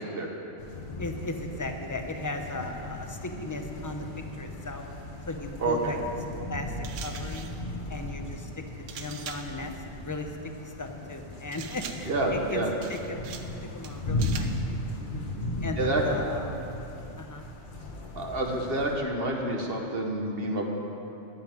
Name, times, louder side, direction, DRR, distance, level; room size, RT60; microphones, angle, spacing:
sound 1, 0.6-19.0, left 1 dB, 45° left, 1.3 m, -37 dB
voice 1, 1.0-4.8 5.3-6.0 6.5-7.5 7.9-10.3 10.6-12.6 12.9-13.3 13.7-16.6 17.2-17.5, left 2 dB, 20° left, 4 dB, 0.7 m, -37 dB
voice 2, 5.6-5.9 12.1-12.7 15.8-16.0 18.1-20.6, right 2 dB, 55° right, 1 dB, 1.5 m, -28 dB
sound 2, 6.8-7.6 8.9-9.6 11.5-12.2 12.8-13.6 13.8-14.6, right 7 dB, 85° right, 1.1 m, -42 dB
13.5 x 5.7 x 9.3 m, 2.9 s
omnidirectional pair, 1.2 m